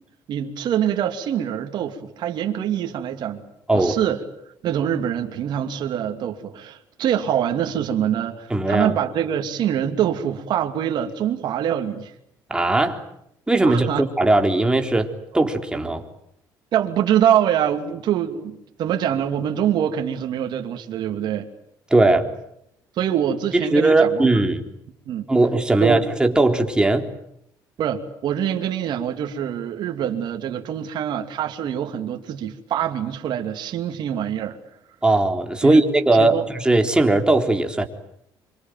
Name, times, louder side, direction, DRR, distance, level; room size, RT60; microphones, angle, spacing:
voice 1, 0.3-3.5 3.7-4.2 4.6-12.1 13.6-14.0 16.7-21.5 23.0-24.3 25.1-25.3 25.8-26.1 27.8-34.6 35.6-35.8 36.1-36.4, right 10 dB, 65° right, 4 dB, 2.7 m, -24 dB
voice 2, 8.5-8.9 12.5-13.0 13.5-16.0 21.9-22.3 23.5-24.6 25.3-27.1 35.0-37.9, right 2 dB, 10° right, 4 dB, 3.7 m, -19 dB
26.0 x 25.0 x 9.2 m, 0.76 s
cardioid pair, 95°, 8 cm